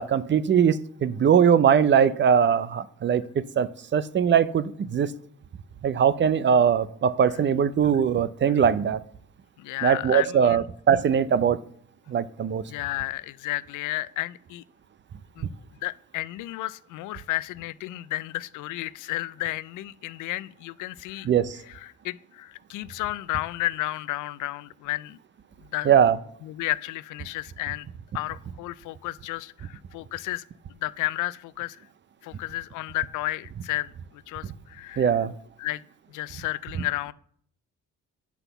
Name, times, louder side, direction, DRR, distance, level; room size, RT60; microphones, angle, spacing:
voice 1, 0.0-5.1 5.8-9.0 9.8-11.6 12.1-12.6 21.3-21.6 25.9-26.2 35.0-35.3, right 8 dB, 40° right, 0.5 m, -21 dB
voice 2, 9.6-10.6 12.7-14.6 15.4-15.5 15.8-21.3 21.7-25.2 25.7-25.9 26.4-27.9 28.1-30.4 30.7-31.9 32.2-35.2 35.6-35.8 36.1-37.1, left 17 dB, 85° left, 0.5 m, -32 dB
8.0 x 5.8 x 6.8 m
cardioid pair, 90°, 30 cm